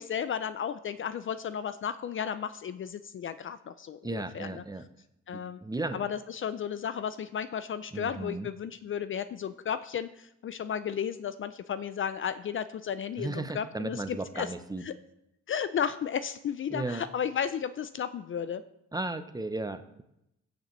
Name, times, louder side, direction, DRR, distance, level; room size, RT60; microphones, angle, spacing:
voice 1, 0.0-4.6 5.3-5.6 5.9-14.5 14.8-14.9 15.5-18.6, left 8 dB, 45° left, 13 dB, 0.4 m, -34 dB
voice 2, 4.0-4.8 5.3-6.0 7.9-8.5 13.2-14.8 16.7-17.0 18.9-20.0, right 2 dB, 15° right, 10 dB, 0.6 m, -35 dB
15.5 x 6.7 x 3.1 m, 0.84 s
cardioid pair, 90°, 30 cm